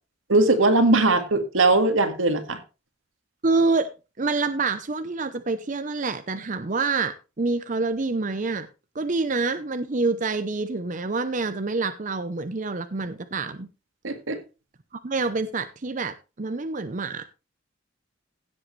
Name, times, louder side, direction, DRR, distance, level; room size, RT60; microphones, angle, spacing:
voice 1, 0.3-2.6 14.0-14.4, right 2 dB, 85° right, 1.9 m, -20 dB
voice 2, 3.4-3.9 4.2-8.7 8.9-13.7 14.9-17.2, right 3 dB, 40° right, 0.7 m, -27 dB
16.0 x 7.7 x 3.2 m
head